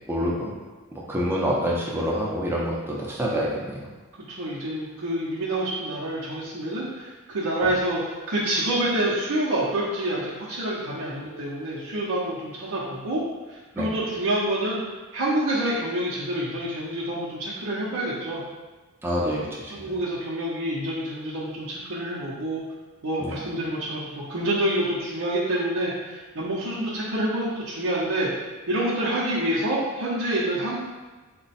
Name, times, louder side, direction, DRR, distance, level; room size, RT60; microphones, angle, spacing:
voice 1, 0.1-0.5 0.9-3.9 13.8-13.9 19.0-19.9 23.2-23.4, equal, 10° right, -4 dB, 0.6 m, -27 dB
voice 2, 4.3-13.2 13.5-14.8 15.1-18.4 19.2-19.4 19.7-22.6 23.0-28.3 28.7-30.8, right 1 dB, 90° right, -8 dB, 0.8 m, -27 dB
4.1 x 2.2 x 4.1 m, 1.3 s
head